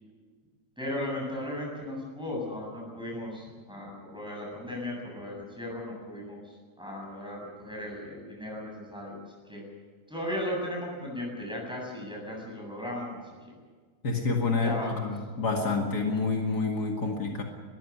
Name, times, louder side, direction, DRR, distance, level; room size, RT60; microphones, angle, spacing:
voice 1, 0.8-9.6 10.1-13.2 14.6-15.1, left 1 dB, 5° right, -2 dB, 7.9 m, -36 dB
voice 2, 14.0-17.4, left 3 dB, 70° left, 1 dB, 2.6 m, -28 dB
21.5 x 15.0 x 9.8 m, 1.5 s
omnidirectional pair, 1.8 m